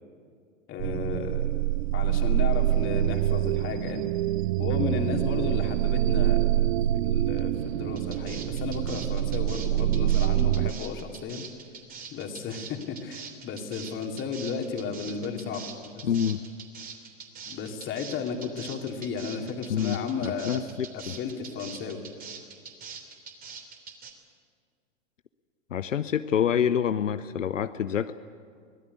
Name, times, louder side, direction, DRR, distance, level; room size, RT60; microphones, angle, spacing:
voice 1, 0.7-1.7 1.9-4.0 4.6-6.5 6.9-11.5 12.1-15.6 15.9-16.0 17.5-20.6 20.9-22.0, left 5 dB, 30° left, 3 dB, 3.0 m, -33 dB
sound 1, 0.8-10.7, right 14 dB, 55° right, 0.6 m, -25 dB
sound 2, 8.0-24.1, right 6 dB, 25° right, 3.1 m, -43 dB
voice 2, 16.0-16.4 19.7-21.2 25.7-28.1, left 8 dB, 80° left, 12 dB, 0.7 m, -27 dB
24.0 x 17.5 x 8.3 m, 2.2 s
figure-of-eight pair, 100°, 37 cm